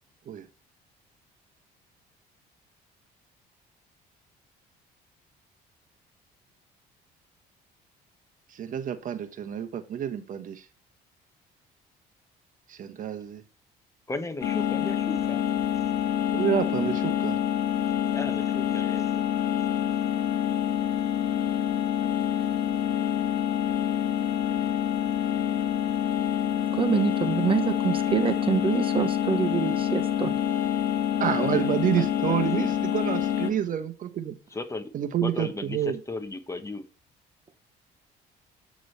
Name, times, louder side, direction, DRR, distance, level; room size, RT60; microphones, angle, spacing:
voice 1, 8.5-10.7 12.7-13.4 16.3-17.4 31.2-34.4 34.9-36.0, right 9 dB, 50° right, 8 dB, 1.1 m, -28 dB
voice 2, 14.1-15.4 18.1-19.2 31.4-31.7 32.0-32.7 34.5-34.9 35.2-35.8 36.1-36.8, left 2 dB, 15° left, 8 dB, 1.2 m, -36 dB
sound 1, 14.4-33.5, left 10 dB, 90° left, 1.7 m, -26 dB
voice 3, 26.7-30.3, right 6 dB, 30° right, 8 dB, 1.2 m, -26 dB
8.4 x 6.2 x 3.3 m, 0.34 s
cardioid pair, 110°, 17 cm